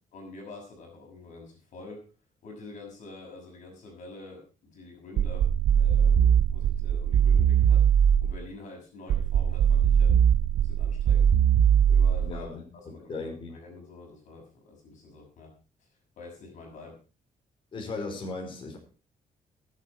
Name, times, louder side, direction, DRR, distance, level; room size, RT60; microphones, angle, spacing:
voice 1, 0.1-2.0 2.4-11.3 11.8-15.5 16.2-17.0, left 3 dB, 65° left, 1 dB, 6.5 m, -47 dB
sound 1, 5.2-8.4 9.1-12.4, right 8 dB, 65° right, 0.9 m, -21 dB
voice 2, 12.2-12.6 13.0-13.5 17.7-18.8, left 3 dB, 40° left, 1 dB, 4.9 m, -36 dB
21.0 x 8.0 x 4.7 m, 0.34 s
cardioid pair, 135°, 14 cm